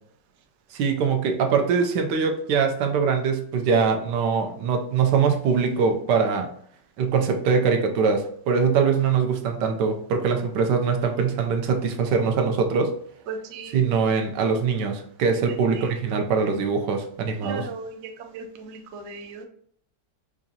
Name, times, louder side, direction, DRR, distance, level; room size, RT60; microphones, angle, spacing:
voice 1, 0.7-6.5 7.0-12.9 13.7-17.7, right 5 dB, 85° right, 4 dB, 1.3 m, -22 dB
voice 2, 13.3-13.8 15.5-15.9 17.4-19.4, right 4 dB, 70° right, 4 dB, 0.6 m, -37 dB
4.9 x 2.4 x 2.7 m, 0.63 s
omnidirectional pair, 1.9 m